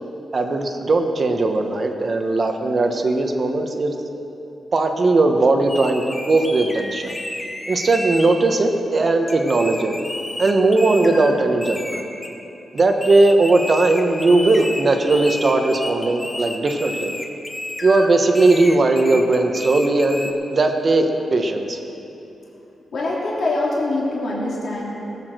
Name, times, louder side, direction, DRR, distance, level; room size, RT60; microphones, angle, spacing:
voice 1, 0.3-3.9 4.7-7.1 7.7-10.0 10.4-12.0 12.7-17.1 17.8-21.8, right 2 dB, 45° right, 4 dB, 1.2 m, -18 dB
sound 1, 5.7-8.3 9.3-11.3 11.6-12.3 12.8-18.1 18.3-20.3, left 1 dB, 20° left, 1.2 m, -31 dB
voice 2, 22.9-24.9, left 2 dB, 65° left, -5 dB, 2.8 m, -24 dB
18.5 x 7.4 x 6.3 m, 3.0 s
cardioid pair, 95°, 0 cm